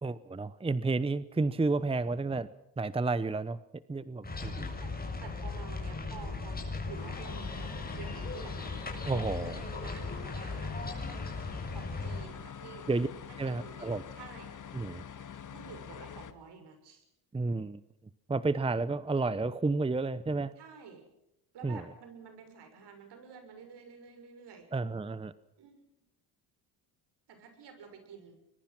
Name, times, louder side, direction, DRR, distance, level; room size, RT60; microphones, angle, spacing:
voice 1, 0.0-2.5 2.8-3.6 3.9-4.8 9.1-9.6 12.9-13.1 13.4-14.0 14.7-15.0 17.3-17.8 18.3-20.5 21.6-21.8 24.7-25.3, right 3 dB, 15° right, 16 dB, 0.8 m, -31 dB
sound 1, 4.2-12.2, left 3 dB, 20° left, 7.2 m, -38 dB
voice 2, 4.4-8.6 9.1-11.0 11.7-12.9 13.3-14.5 15.5-17.0 20.6-21.0 21.5-24.8 25.6-25.9 27.3-28.4, right 6 dB, 65° right, 7 dB, 6.6 m, -50 dB
sound 2, 6.9-16.3, left 8 dB, 45° left, 2.0 m, -46 dB
25.0 x 21.5 x 6.0 m, 0.81 s
cardioid pair, 85°, 43 cm